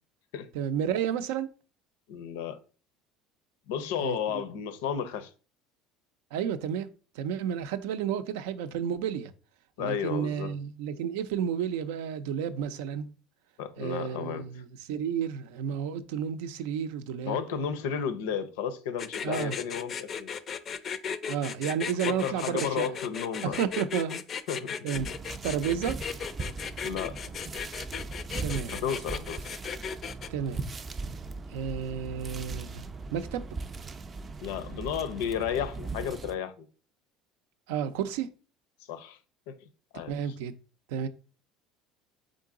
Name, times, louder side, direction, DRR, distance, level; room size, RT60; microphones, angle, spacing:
voice 1, 0.5-1.5 4.0-4.4 6.3-6.9 7.2-9.3 9.8-13.1 13.8-17.4 19.2-19.6 21.3-22.9 23.4-24.2 24.8-25.1 25.4-26.0 28.4-28.8 30.3-30.6 31.5-32.8 33.1-33.4 37.7-38.3 40.1-40.5 40.9-41.1, right 8 dB, 85° right, 0.4 m, -31 dB
voice 2, 2.1-2.6 3.7-5.3 9.8-10.5 13.6-14.6 17.2-20.3 22.0-23.6 24.5-24.9 26.8-27.5 28.7-29.5 34.4-36.7 38.9-39.2 39.5-39.7 39.9-40.1, left 8 dB, 90° left, 0.6 m, -33 dB
sound 1, 19.0-30.3, left 7 dB, 40° left, 0.4 m, -36 dB
sound 2, 24.9-36.3, right 3 dB, 25° right, 0.4 m, -39 dB
3.8 x 3.7 x 3.7 m
supercardioid pair, 120°, 0 cm